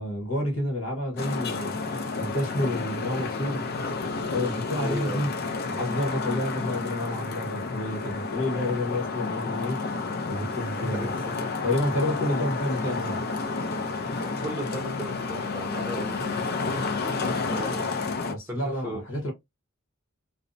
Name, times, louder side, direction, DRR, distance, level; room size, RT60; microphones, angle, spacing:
voice 1, 0.0-1.8 2.2-3.6 4.3-5.3 5.7-9.8 10.3-11.2 11.6-13.3 18.3-19.3, left 1 dB, 70° left, 1.0 m, -29 dB
Traffic noise roadway noise, 1.2-18.3, left 4 dB, 50° left, 0.5 m, -30 dB
voice 2, 4.8-5.3 10.8-11.4 14.0-17.9 18.5-19.0, equal, 10° right, 0.7 m, -37 dB
2.6 x 2.0 x 2.5 m
head